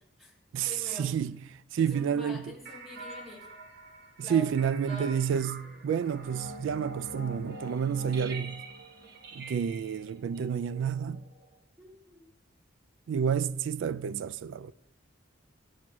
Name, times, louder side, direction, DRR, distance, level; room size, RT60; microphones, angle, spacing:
voice 1, 0.0-0.4 0.6-1.1 1.8-3.6 4.2-4.5 4.9-5.3 11.8-12.3, left 2 dB, ahead, 1.5 m, -46 dB
voice 2, 1.0-1.4 1.7-2.5 4.2-8.6 9.3-11.2 13.1-14.7, right 7 dB, 75° right, 0.3 m, -30 dB
sound 1, 2.6-11.6, right 2 dB, 55° right, 1.3 m, -45 dB
8.4 x 6.2 x 6.0 m
head